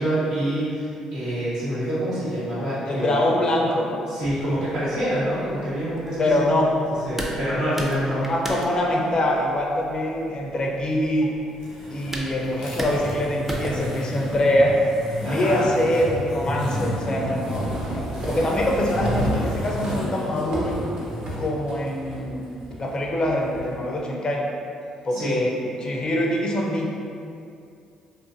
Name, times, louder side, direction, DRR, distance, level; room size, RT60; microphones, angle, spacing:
voice 1, 0.0-3.2 4.1-6.4 7.0-8.2 15.2-15.7 25.1-25.4, right 1 dB, 85° right, -12 dB, 1.1 m, -26 dB
voice 2, 2.8-3.9 6.2-6.9 8.1-11.3 11.9-14.8 15.2-20.8 21.4-24.5 25.0-26.9, left 1 dB, 40° left, -1 dB, 0.5 m, -24 dB
sound 1, 4.2-17.0, equal, 15° right, 0.4 m, -37 dB
sound 2, 11.5-21.4, left 1 dB, 85° left, 0.8 m, -32 dB
sound 3, 15.8-23.7, right 1 dB, 55° right, 0.7 m, -34 dB
2.5 x 2.4 x 2.5 m, 2.4 s
hypercardioid pair, 50°, 2 cm